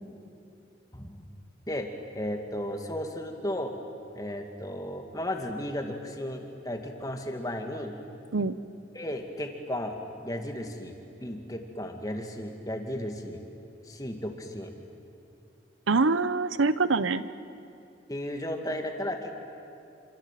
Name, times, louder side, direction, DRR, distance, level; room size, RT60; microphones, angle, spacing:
voice 1, 0.9-1.3 1.7-3.8 4.1-7.9 8.9-9.9 10.2-10.9 11.2-13.4 13.9-14.7 18.1-19.4, left 1 dB, 20° left, 3 dB, 2.2 m, -34 dB
voice 2, 15.9-17.2, right 3 dB, 90° right, 14 dB, 0.9 m, -24 dB
27.5 x 26.5 x 7.6 m, 2.6 s
head